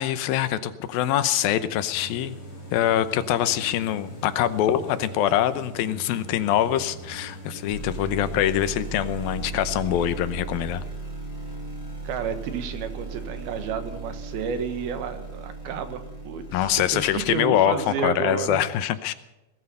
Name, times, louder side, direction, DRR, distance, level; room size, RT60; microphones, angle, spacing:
voice 1, 0.0-2.3 2.7-10.8 16.5-19.1, left 11 dB, 80° left, 12 dB, 2.6 m, -24 dB
sound 1, 0.8-17.4, right 4 dB, 20° right, 5.7 m, -39 dB
sound 2, 1.9-10.1, right 1 dB, 45° left, 3.6 m, -42 dB
voice 2, 12.1-18.7, right 6 dB, 85° right, 8 dB, 3.5 m, -31 dB
19.0 x 14.0 x 5.5 m, 1.0 s
omnidirectional pair, 4.3 m